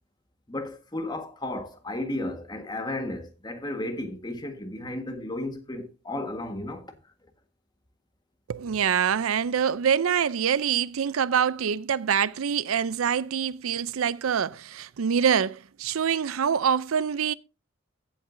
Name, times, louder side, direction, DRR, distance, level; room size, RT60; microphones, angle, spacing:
voice 1, 0.5-6.9, left 1 dB, 20° left, 1.4 m, -34 dB
voice 2, 8.5-17.3, right 7 dB, 85° right, 0.5 m, -25 dB
15.5 x 7.9 x 2.6 m
head